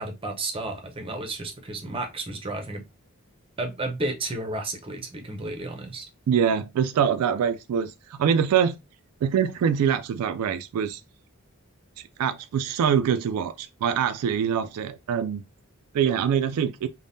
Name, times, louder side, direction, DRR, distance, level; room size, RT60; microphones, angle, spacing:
voice 1, 0.0-2.8 3.6-6.1, right 2 dB, 25° right, 0.6 m, -32 dB
voice 2, 6.3-8.8 9.2-11.0 12.2-15.4 15.9-16.9, right 8 dB, 80° right, 0.3 m, -24 dB
3.4 x 2.1 x 2.6 m
head